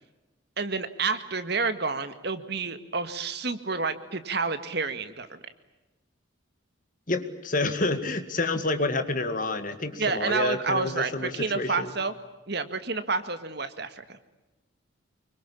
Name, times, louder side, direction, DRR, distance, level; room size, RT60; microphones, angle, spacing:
voice 1, 0.6-5.4 10.0-12.1 12.5-14.2, right 4 dB, 55° right, 10 dB, 1.9 m, -29 dB
voice 2, 7.1-11.9, left 2 dB, 40° left, 9 dB, 2.2 m, -28 dB
26.0 x 24.0 x 8.7 m, 1.0 s
head